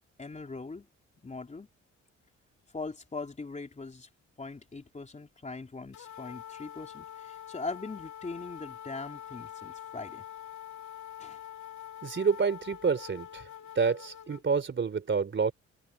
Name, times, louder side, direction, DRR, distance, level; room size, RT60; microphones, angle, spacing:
voice 1, 0.2-0.9 1.2-1.7 2.7-4.1 4.4-10.2 11.2-11.4, left 3 dB, 25° left, 3.6 m, -41 dB
sound 1, 5.9-14.4, left 11 dB, 70° left, 3.1 m, -45 dB
voice 2, 12.0-13.5 13.8-15.5, right 5 dB, 40° right, 3.6 m, -28 dB
cardioid pair, 90°, 30 cm